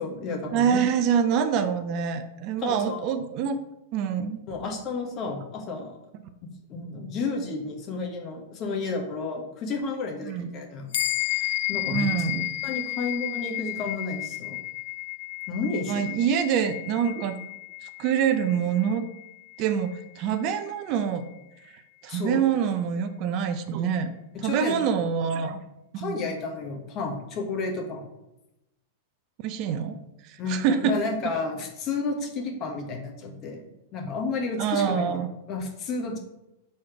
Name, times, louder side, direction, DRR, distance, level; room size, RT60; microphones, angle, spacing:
voice 1, 0.0-0.8 2.6-3.1 4.5-6.0 6.4-10.9 11.3-12.2 12.6-14.6 15.5-16.1 22.1-22.4 24.3-24.8 26.0-28.1 30.4-35.2 35.5-36.2, left 3 dB, 40° left, 2 dB, 1.4 m, -32 dB
voice 2, 0.5-3.6 3.9-4.4 10.3-10.5 11.9-12.5 15.9-17.4 17.8-19.0 19.6-21.3 22.0-24.1 24.4-25.6 25.9-26.3 29.4-30.0 30.2-31.0 34.6-35.3, right 7 dB, 45° right, 9 dB, 0.6 m, -25 dB
sound 1, 10.9-20.7, left 19 dB, 65° left, 0.3 m, -33 dB
4.9 x 4.3 x 5.8 m, 0.92 s
hypercardioid pair, 110°, 0 cm